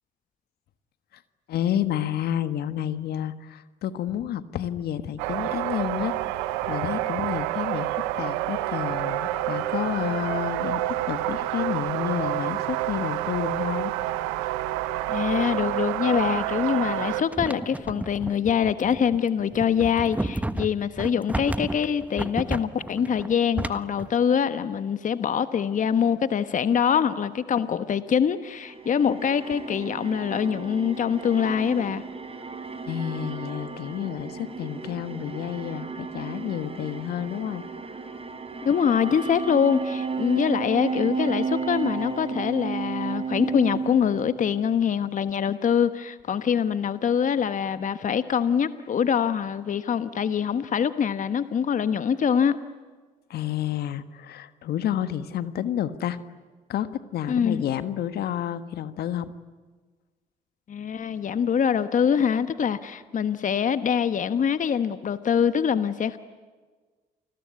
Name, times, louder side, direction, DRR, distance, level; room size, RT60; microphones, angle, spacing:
voice 1, 1.5-6.3 6.6-13.9 32.8-37.6 53.3-56.2 56.7-59.3, left 10 dB, 70° left, 12 dB, 1.6 m, -30 dB
sound 1, 5.2-17.2, right 14 dB, 85° right, 1.1 m, -28 dB
voice 2, 15.1-32.0 38.6-52.6 57.3-57.6 60.7-66.2, left 7 dB, 50° left, 12 dB, 1.2 m, -24 dB
sound 2, 17.3-24.1, right 1 dB, 10° right, 1.4 m, -32 dB
sound 3, 28.5-44.9, right 5 dB, 35° right, 4.0 m, -33 dB
29.0 x 21.0 x 9.6 m, 1.4 s
hypercardioid pair, 55°, 17 cm